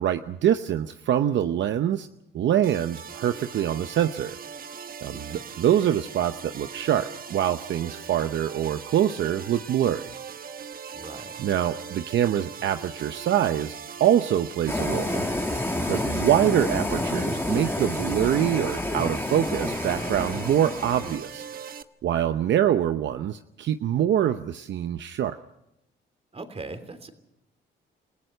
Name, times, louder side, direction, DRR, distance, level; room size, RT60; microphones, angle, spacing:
voice 1, 0.0-2.1 2.3-4.4 5.0-10.1 11.4-15.3 15.9-21.4 22.0-25.3, right 10 dB, 65° right, 9 dB, 0.8 m, -25 dB
sound 1, 2.6-21.8, right 7 dB, 45° right, 1.2 m, -40 dB
voice 2, 5.1-5.4 10.9-11.4 26.3-27.1, right 3 dB, 30° right, 8 dB, 3.1 m, -40 dB
sound 2, 14.7-21.2, left 2 dB, 10° left, 1.9 m, -29 dB
29.5 x 16.0 x 6.6 m, 0.85 s
cardioid pair, 90°, 20 cm